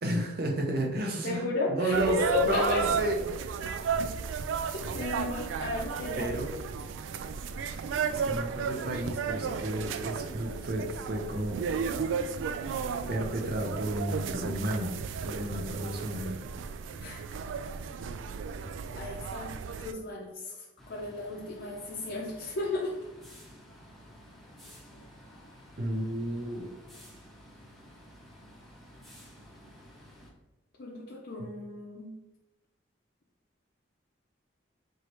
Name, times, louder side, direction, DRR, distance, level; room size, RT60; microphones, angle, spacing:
voice 1, 0.0-2.2 2.4-3.3 6.2-6.5 8.1-11.6 13.1-14.9 15.2-16.4 25.8-26.7 31.4-31.5, right 1 dB, 55° right, 2 dB, 0.7 m, -32 dB
voice 2, 1.2-2.9 4.7-6.3 17.0-17.4 18.9-23.0 30.8-32.1, left 2 dB, 60° left, -5 dB, 0.6 m, -34 dB
sound 1, 1.9-19.9, right 6 dB, 80° right, 0.3 m, -34 dB
sound 2, 20.8-30.3, equal, ahead, 0.7 m, -52 dB
4.7 x 3.0 x 3.0 m, 1.1 s
head